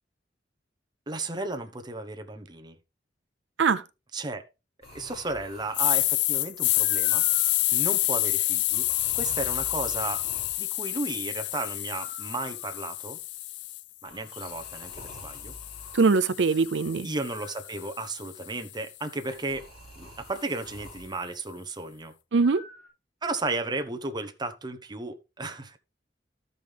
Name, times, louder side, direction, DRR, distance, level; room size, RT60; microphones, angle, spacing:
voice 1, 1.1-2.8 4.1-4.4 4.9-7.2 7.7-8.9 9.1-10.2 10.6-13.2 14.0-15.5 17.0-19.6 20.0-22.1 23.2-25.8, right 2 dB, 25° right, 1.0 m, -34 dB
sound 1, 4.8-6.0 6.7-7.6 8.7-10.7 12.0-12.9 14.1-16.1 17.3-18.0 19.3-21.1 22.4-22.9, left 1 dB, 35° left, 6.5 m, -47 dB
sound 2, 5.7-13.8 14.3-18.5, left 17 dB, 75° left, 0.4 m, -28 dB
voice 2, 15.9-17.1 22.3-22.6, right 4 dB, 80° right, 0.5 m, -22 dB
13.5 x 5.4 x 3.5 m
head